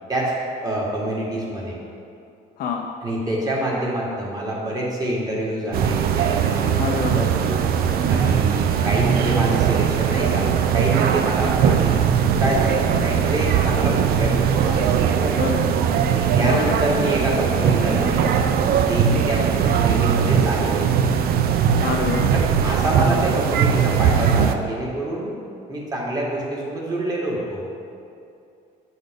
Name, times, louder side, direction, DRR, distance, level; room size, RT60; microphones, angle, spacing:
voice 1, 0.6-1.8 3.0-6.8 7.1-7.6 8.1-12.0 12.4-15.4 16.1-21.2 22.3-25.3 25.7-27.6, right 1 dB, 20° right, -4 dB, 1.7 m, -26 dB
voice 2, 2.6-2.9 6.8-7.2 15.4-15.7 16.4-16.8 21.8-22.3, left 6 dB, 65° left, 0 dB, 0.6 m, -26 dB
sound 1, 5.7-24.6, right 8 dB, 65° right, 0.5 m, -20 dB
8.5 x 4.0 x 5.1 m, 2.5 s
cardioid pair, 110°, 17 cm